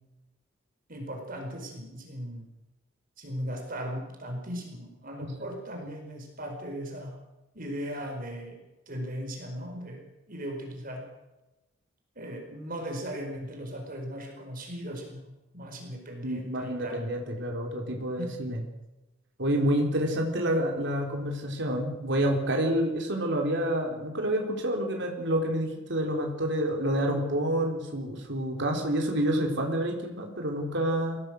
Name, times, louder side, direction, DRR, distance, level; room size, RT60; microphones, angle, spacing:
voice 1, 0.9-2.5 3.2-7.2 7.5-8.6 8.9-11.1 12.1-17.0 18.2-18.4 28.7-28.8, equal, 45° right, 3 dB, 4.9 m, -38 dB
voice 2, 16.2-18.6 19.4-31.2, right 1 dB, 60° right, 1 dB, 3.8 m, -28 dB
24.0 x 17.5 x 6.5 m, 1.0 s
head